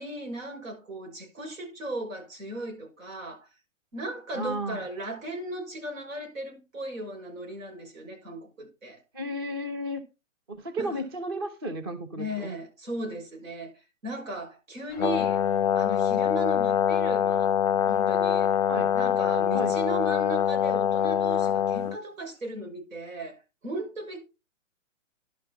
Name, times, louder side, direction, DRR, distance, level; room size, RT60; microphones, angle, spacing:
voice 1, 0.0-3.5 3.9-9.0 10.8-10.9 12.2-15.4 15.7-17.6 17.9-18.5 18.9-24.2, right 1 dB, 85° right, 6.3 m, -36 dB
voice 2, 4.3-4.8 9.1-10.1 10.5-12.6 18.7-19.0 19.5-19.8, right 1 dB, 20° right, 0.6 m, -33 dB
Brass instrument, 15.0-22.0, left 8 dB, 30° left, 0.5 m, -24 dB
11.5 x 5.6 x 5.6 m
hypercardioid pair, 165°, 39 cm